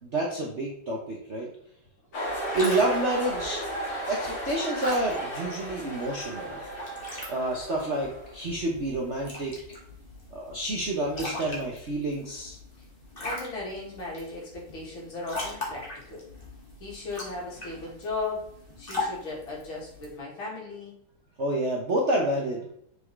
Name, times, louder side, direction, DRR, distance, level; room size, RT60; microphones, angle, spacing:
voice 1, 0.0-1.5 2.1-2.2 2.5-3.6 4.1-6.6 7.3-9.6 10.3-12.6 21.4-22.7, right 1 dB, 50° right, -2 dB, 0.9 m, -28 dB
sound 1, 2.1-8.4, right 1 dB, 50° left, 2.2 m, -35 dB
sound 2, 2.2-20.2, left 2 dB, 25° left, 1.7 m, -41 dB
voice 2, 13.2-16.2 16.8-20.9, left 3 dB, 70° left, -4 dB, 2.9 m, -36 dB
6.8 x 5.0 x 3.2 m, 0.67 s
omnidirectional pair, 2.4 m